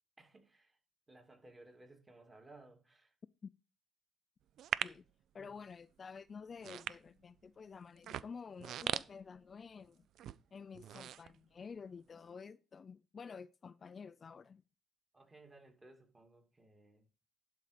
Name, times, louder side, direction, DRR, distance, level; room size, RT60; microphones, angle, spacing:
voice 1, 0.2-0.8 1.1-3.1 5.4-5.5 15.1-17.1, right 2 dB, 25° right, 2.7 m, -60 dB
sound 1, 4.6-5.1 5.7-6.0 6.5-7.5 8.0-9.9 10.1-10.4 10.7-11.9 12.3-12.4, right 10 dB, 75° right, 0.4 m, -40 dB
voice 2, 5.3-10.1 10.5-14.6, left 5 dB, 40° left, 0.3 m, -50 dB
11.5 x 4.1 x 5.0 m
cardioid pair, 90°, 0 cm